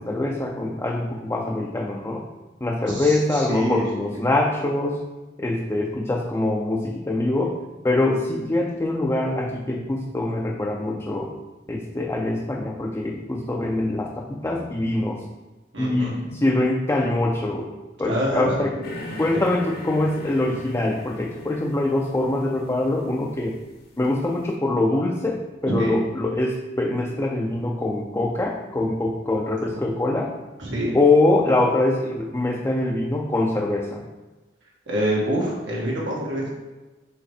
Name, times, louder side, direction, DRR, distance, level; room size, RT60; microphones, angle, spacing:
voice 1, 0.0-2.3 2.6-5.1 5.4-7.6 7.8-11.3 11.7-15.2 15.8-17.7 18.0-18.8 19.2-23.6 24.0-30.3 30.9-34.0, left 2 dB, 15° left, -1 dB, 0.4 m, -24 dB
voice 2, 3.5-3.8 15.7-16.2 18.1-18.5 18.8-18.9 25.7-26.0 30.6-31.0 34.9-36.5, right 1 dB, 85° right, -4 dB, 1.9 m, -26 dB
sound 1, 18.8-24.4, left 1 dB, 55° left, 0.8 m, -40 dB
6.3 x 3.2 x 4.8 m, 1.2 s
head